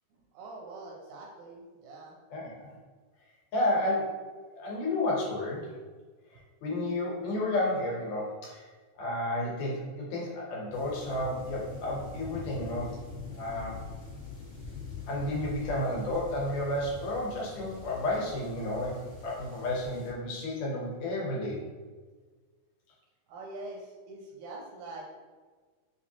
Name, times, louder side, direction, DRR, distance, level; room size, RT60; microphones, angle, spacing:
voice 1, 0.3-2.2 23.3-25.0, right 2 dB, 80° right, -1 dB, 1.8 m, -44 dB
voice 2, 2.3-2.7 3.5-4.2 4.5-5.7 6.6-8.6 9.0-12.9 13.3-13.8 15.1-21.6, left 1 dB, 85° left, -3 dB, 2.5 m, -31 dB
sound 1, 10.7-20.1, left 4 dB, 45° left, 1.3 m, -44 dB
5.4 x 2.6 x 2.8 m, 1.4 s
omnidirectional pair, 3.7 m